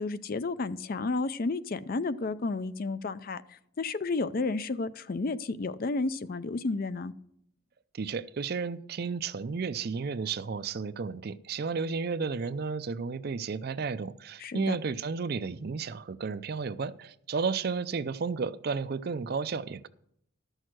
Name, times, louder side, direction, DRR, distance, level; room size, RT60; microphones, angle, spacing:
voice 1, 0.0-7.1 14.4-14.8, left 3 dB, 45° left, 0.5 m, -32 dB
voice 2, 7.9-19.9, right 5 dB, 50° right, 0.4 m, -33 dB
12.5 x 6.4 x 6.2 m
head